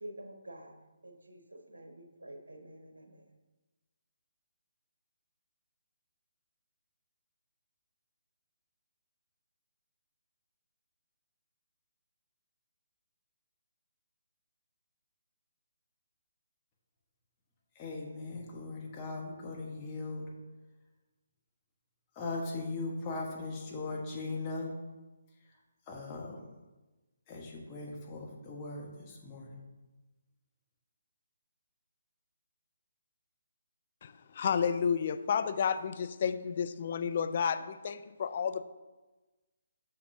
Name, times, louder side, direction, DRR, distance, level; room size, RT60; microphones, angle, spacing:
voice 1, 0.0-0.7 1.0-1.4 1.7-3.2, right 1 dB, 75° right, 4 dB, 0.9 m, -48 dB
voice 2, 17.8-20.3 22.2-24.7 25.9-26.4 27.3-29.6, left 3 dB, 25° left, -2 dB, 1.2 m, -39 dB
voice 3, 34.0-38.6, left 7 dB, 45° left, 11 dB, 0.4 m, -31 dB
6.6 x 5.6 x 2.7 m, 1.2 s
figure-of-eight pair, 145°, 0 cm